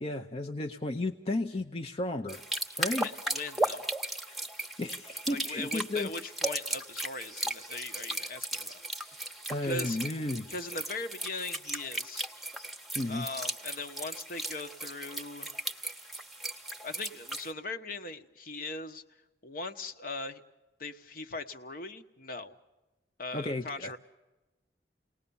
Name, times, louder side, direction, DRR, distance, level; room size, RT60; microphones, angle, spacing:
voice 1, 0.0-2.4 2.8-3.1 4.3-4.4 4.8-6.1 9.5-10.5 12.9-13.3 23.3-24.0, left 2 dB, 35° left, 5 dB, 0.8 m, -33 dB
sound 1, 2.3-17.5, right 1 dB, ahead, 1.1 m, -36 dB
voice 2, 2.9-3.8 5.3-9.3 9.6-10.0 10.5-12.3 13.1-15.5 16.8-19.0 19.4-20.4 20.8-22.5 23.2-24.0, left 3 dB, 55° left, 8 dB, 1.3 m, -40 dB
29.5 x 19.5 x 7.1 m, 1.1 s
head